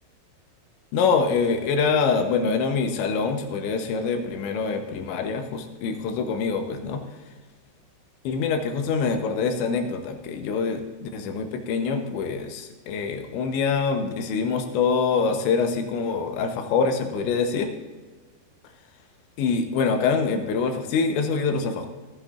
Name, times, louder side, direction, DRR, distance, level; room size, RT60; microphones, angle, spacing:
voice 1, 0.9-7.0 8.2-17.7 19.4-21.9, left 5 dB, 85° left, 5 dB, 3.3 m, -25 dB
13.5 x 13.5 x 2.5 m, 1.3 s
omnidirectional pair, 5.0 m